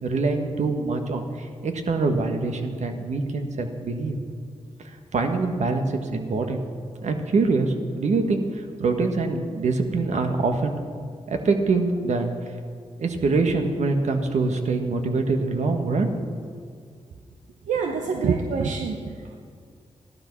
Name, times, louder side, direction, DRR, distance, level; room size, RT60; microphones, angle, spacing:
voice 1, 0.0-4.2 5.1-6.6 7.0-10.7 11.3-12.3 13.0-16.3, right 3 dB, 70° right, 5 dB, 1.6 m, -24 dB
voice 2, 17.7-19.4, right 5 dB, 90° right, 3 dB, 0.9 m, -26 dB
15.0 x 11.5 x 6.2 m, 2.1 s
cardioid pair, 65°, 12 cm